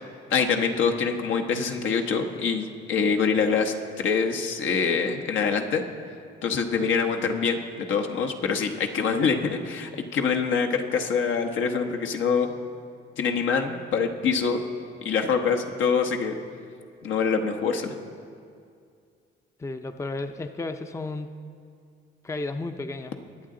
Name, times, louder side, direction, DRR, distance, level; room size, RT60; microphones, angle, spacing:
voice 1, 0.3-5.8 6.4-12.5 13.2-14.6 15.0-16.4 17.0-17.9, left 5 dB, 75° left, 4 dB, 1.0 m, -25 dB
voice 2, 19.6-21.3 22.2-23.2, left 2 dB, 15° left, 8 dB, 0.5 m, -33 dB
21.5 x 8.5 x 3.8 m, 2.3 s
cardioid pair, 90°, 20 cm